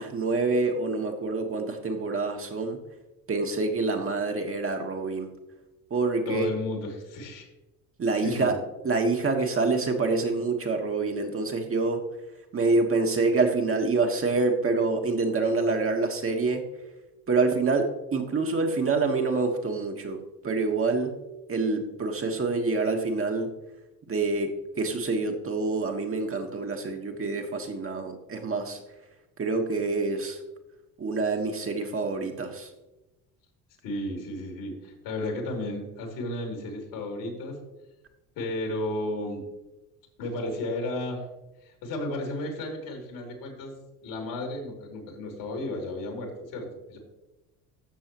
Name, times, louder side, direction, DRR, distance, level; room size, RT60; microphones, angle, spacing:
voice 1, 0.0-2.8 3.3-5.3 5.9-6.5 8.0-8.6 8.8-12.0 12.5-16.6 17.3-20.2 20.4-21.1 21.5-23.5 24.1-28.8 29.4-30.4 31.0-32.7, right 3 dB, 30° right, 3 dB, 1.4 m, -26 dB
voice 2, 6.3-7.5 8.2-8.6 33.8-37.6 38.4-39.4 40.2-41.2 41.6-43.7 44.0-47.0, left 1 dB, 65° left, 2 dB, 2.9 m, -33 dB
13.0 x 6.9 x 3.0 m, 1.0 s
hypercardioid pair, 65°, 45 cm